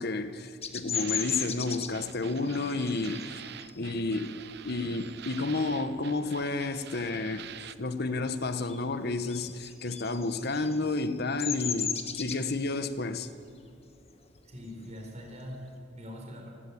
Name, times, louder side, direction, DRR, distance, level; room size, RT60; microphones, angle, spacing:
voice 1, 0.0-3.4 3.8-7.5 7.8-13.3, left 3 dB, 60° left, 1.2 m, -31 dB
Bird vocalization bird call bird song, 0.6-5.8 6.2-6.6 6.9-8.1 8.4-15.7, left 7 dB, 35° left, 1.6 m, -37 dB
sound 1, 0.9-7.8, right 10 dB, 65° right, 0.7 m, -46 dB
voice 2, 14.4-16.5, equal, 40° right, 4.6 m, -43 dB
28.5 x 13.0 x 8.6 m
head